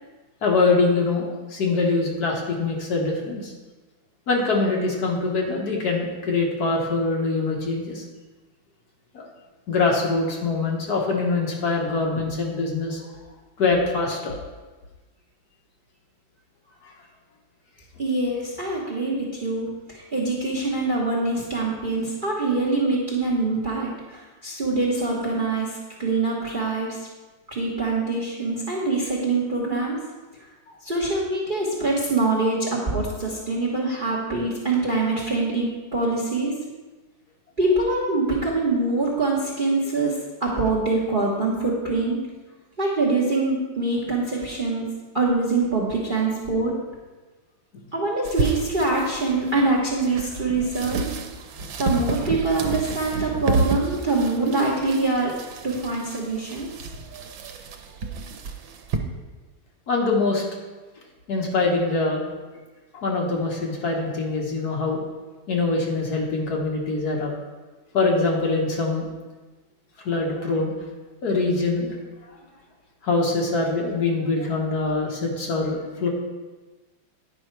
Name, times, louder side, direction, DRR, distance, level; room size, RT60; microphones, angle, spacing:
voice 1, 0.4-3.5 4.3-8.0 9.1-9.3 9.7-13.1 13.6-14.4 16.8-16.9 47.7-47.8 51.6-51.7 59.9-60.4 61.3-62.2 62.9-65.0 65.5-67.3 67.9-69.1 70.0-70.7 71.2-72.0 73.0-76.1, left 3 dB, 55° left, -1 dB, 1.5 m, -24 dB
voice 2, 18.0-27.0 27.5-30.0 30.8-36.6 37.6-42.2 42.8-44.9 45.1-46.7 47.9-51.1 51.8-55.3 55.6-56.7, right 3 dB, 35° right, -3 dB, 1.0 m, -24 dB
sound 1, 48.2-59.0, right 4 dB, 85° right, 1.5 m, -30 dB
9.7 x 5.4 x 4.5 m, 1.2 s
omnidirectional pair, 2.1 m